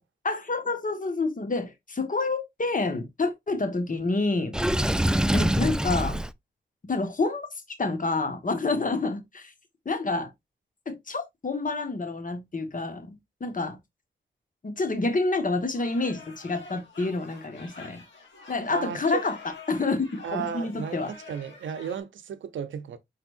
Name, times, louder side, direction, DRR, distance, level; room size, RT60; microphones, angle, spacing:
voice 1, 0.2-4.5 5.3-6.2 6.9-9.5 9.8-10.3 10.8-13.8 14.6-18.0 18.5-19.4 19.7-21.1, left 3 dB, 45° left, 1.4 m, -28 dB
Water / Sink (filling or washing), 4.5-6.3, right 1 dB, 5° right, 0.4 m, -24 dB
sound 1, 15.7-22.0, left 3 dB, 80° left, 2.4 m, -47 dB
voice 2, 18.7-19.2 20.2-23.0, right 7 dB, 85° right, 0.6 m, -34 dB
4.8 x 4.4 x 2.5 m
cardioid pair, 50°, 19 cm